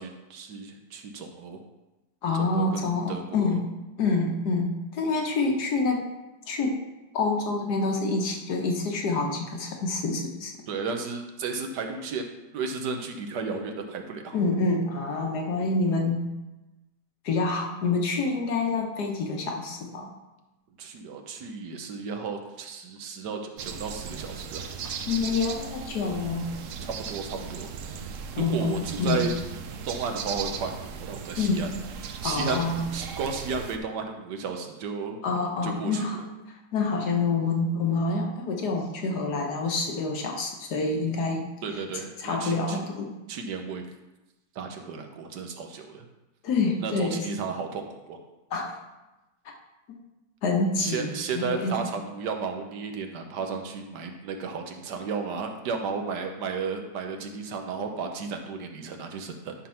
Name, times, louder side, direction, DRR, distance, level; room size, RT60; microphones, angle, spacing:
voice 1, 0.0-1.6 2.3-3.6 10.7-14.4 20.8-24.7 26.8-27.7 28.3-29.3 29.8-31.7 32.2-32.6 32.9-35.2 35.6-36.2 41.6-42.8 43.3-43.8 44.5-46.0 46.8-48.2 50.8-59.5, right 5 dB, 85° right, 4 dB, 1.5 m, -33 dB
voice 2, 2.2-3.6 4.0-6.0 6.5-6.8 7.1-10.5 14.3-16.2 17.3-20.1 25.1-26.5 28.4-29.2 31.4-31.8 32.2-32.9 35.2-36.2 36.7-41.5 42.2-43.2 46.4-47.3 48.5-48.8 50.4-51.7, left 3 dB, 70° left, 2 dB, 1.7 m, -27 dB
sound 1, 23.6-33.8, right 6 dB, 60° right, 0.9 m, -37 dB
10.5 x 3.7 x 5.7 m, 1.0 s
omnidirectional pair, 1.8 m